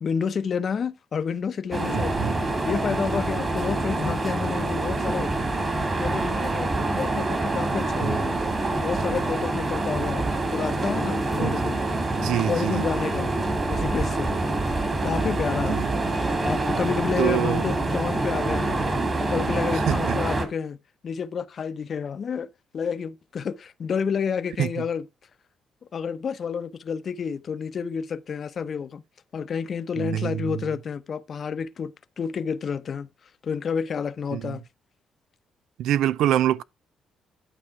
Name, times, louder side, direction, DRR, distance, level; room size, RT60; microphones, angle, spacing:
voice 1, 0.0-2.4 2.6-5.3 5.9-8.4 8.8-11.8 12.3-13.3 13.7-14.3 14.8-15.9 16.2-18.9 19.2-20.8 21.0-25.0 25.9-29.0 29.3-31.9 32.2-33.1 33.4-34.6, left 6 dB, 50° left, 0.7 m, -30 dB
sound 1, 1.7-20.4, right 2 dB, 30° right, 2.3 m, -26 dB
voice 2, 1.9-2.4 8.0-8.2 11.4-11.6 12.2-12.9 15.7-15.9 17.2-17.7 19.7-20.2 24.6-24.7 30.0-30.7 34.3-34.6 35.8-36.6, right 11 dB, 85° right, 0.4 m, -26 dB
11.0 x 4.3 x 4.7 m
cardioid pair, 90°, 0 cm